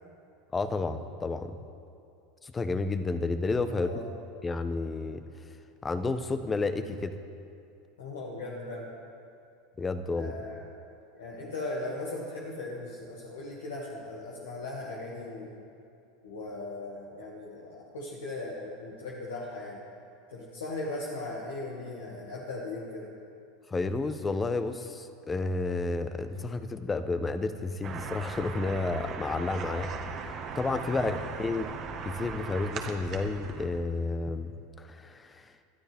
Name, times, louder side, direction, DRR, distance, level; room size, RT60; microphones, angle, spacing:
voice 1, 0.5-1.5 2.4-3.9 4.4-5.2 5.8-7.2 9.8-10.3 23.7-29.9 30.2-31.6 32.0-34.5 34.8-35.4, left 3 dB, 20° left, 10 dB, 1.0 m, -31 dB
voice 2, 3.7-4.0 8.0-8.9 10.1-10.7 11.2-15.5 16.2-19.8 20.3-23.1 30.9-31.2, left 2 dB, 80° left, -4 dB, 2.2 m, -38 dB
sound 1, 27.8-33.7, right 5 dB, 45° right, 1.6 m, -38 dB
20.5 x 12.5 x 3.6 m, 2.5 s
hypercardioid pair, 90°, 0 cm